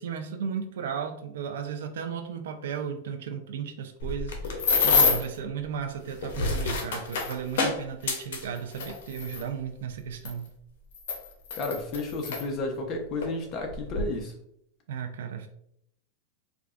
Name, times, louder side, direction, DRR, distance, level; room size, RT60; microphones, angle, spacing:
voice 1, 0.0-10.5 14.9-15.5, right 7 dB, 85° right, 7 dB, 0.5 m, -35 dB
sound 1, 4.0-5.4 6.1-9.4 10.3-10.4 10.9-12.4 13.2-13.3 13.7-14.0, left 4 dB, 85° left, 0.8 m, -27 dB
voice 2, 11.5-14.4, left 2 dB, 35° left, 2 dB, 0.8 m, -32 dB
4.5 x 2.4 x 2.5 m, 0.71 s
supercardioid pair, 145°, 0 cm